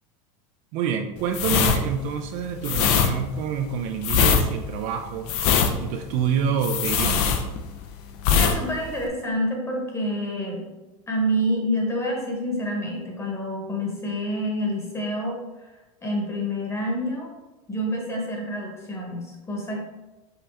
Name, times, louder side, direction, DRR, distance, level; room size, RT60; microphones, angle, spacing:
voice 1, 0.7-5.3 5.8-7.4, right 7 dB, 50° right, 5 dB, 0.4 m, -27 dB
sound 1, 1.3-7.9 8.2-8.6 8.8-9.1, left 6 dB, 55° left, 0.5 m, -21 dB
voice 2, 8.3-10.6 11.1-15.4 16.0-17.3 17.7-19.9, equal, 15° left, -1 dB, 1.1 m, -27 dB
5.5 x 2.7 x 3.4 m, 1.1 s
supercardioid pair, 135°, 18 cm